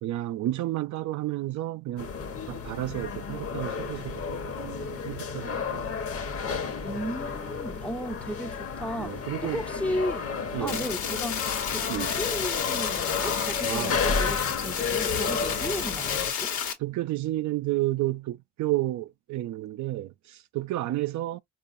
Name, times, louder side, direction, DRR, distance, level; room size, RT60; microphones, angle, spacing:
voice 1, 0.0-2.1 2.5-5.9 9.0-9.6 10.5-10.8 11.9-12.1 13.6-14.0 16.8-21.4, right 16 dB, 70° right, 0.5 m, -31 dB
sound 1, 2.0-16.3, left 5 dB, 50° left, 1.0 m, -32 dB
voice 2, 6.8-10.3 10.6-11.4 11.7-16.5, equal, 5° left, 0.5 m, -35 dB
sound 2, 10.7-16.7, left 7 dB, 75° left, 1.2 m, -31 dB
4.5 x 2.4 x 2.5 m
cardioid pair, 90°, 30 cm